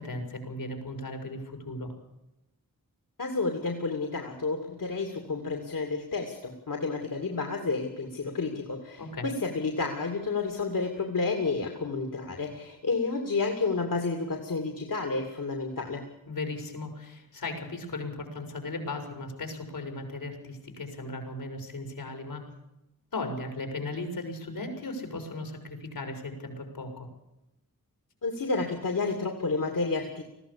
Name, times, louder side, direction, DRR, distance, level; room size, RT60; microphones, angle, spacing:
voice 1, 0.0-1.9 9.0-9.3 16.3-22.5 23.1-27.1, left 2 dB, 85° left, 5 dB, 5.7 m, -37 dB
voice 2, 3.2-16.0 28.2-30.2, left 3 dB, 70° left, 4 dB, 2.7 m, -30 dB
20.0 x 15.0 x 8.5 m, 0.90 s
wide cardioid pair, 70°, 34 cm